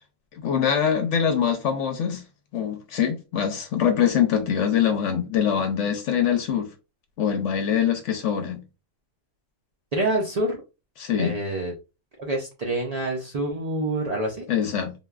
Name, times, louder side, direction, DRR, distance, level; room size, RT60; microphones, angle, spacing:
voice 1, 0.3-2.2 2.5-6.7 7.2-8.6 11.0-11.4 14.5-14.9, left 8 dB, 65° left, 0.8 m, -23 dB
voice 2, 9.9-10.6 11.2-11.7 12.2-14.5, right 1 dB, 65° right, 0.4 m, -27 dB
3.3 x 2.3 x 2.3 m
omnidirectional pair, 1.5 m